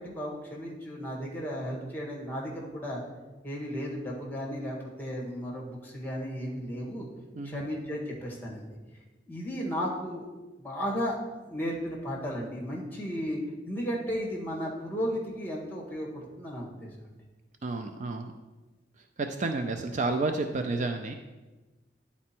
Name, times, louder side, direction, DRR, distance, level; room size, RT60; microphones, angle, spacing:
voice 1, 0.0-3.0 3.4-7.1 7.4-8.7 9.3-10.3 10.6-11.2 11.5-13.4 13.7-16.1 16.4-17.1, equal, 10° left, -2 dB, 1.6 m, -34 dB
voice 2, 17.6-18.3 19.2-21.1, right 3 dB, 40° right, 5 dB, 0.4 m, -30 dB
9.8 x 4.2 x 4.4 m, 1.2 s
head